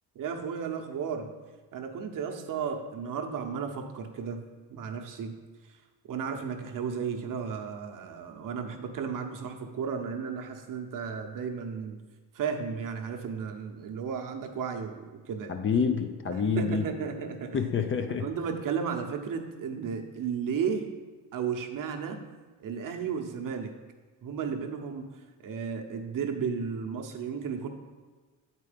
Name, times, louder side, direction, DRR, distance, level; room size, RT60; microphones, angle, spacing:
voice 1, 0.1-1.3 1.7-4.4 4.7-5.4 5.7-5.8 6.0-11.9 12.3-15.5 16.3-17.8 18.2-20.9 21.3-22.2 22.6-23.7 24.2-25.1 25.4-27.7, right 6 dB, 55° right, 4 dB, 0.9 m, -34 dB
voice 2, 15.5-16.9 17.5-18.3, left 6 dB, 30° left, 6 dB, 0.5 m, -27 dB
8.2 x 4.6 x 5.1 m, 1.3 s
cardioid pair, 125°, 39 cm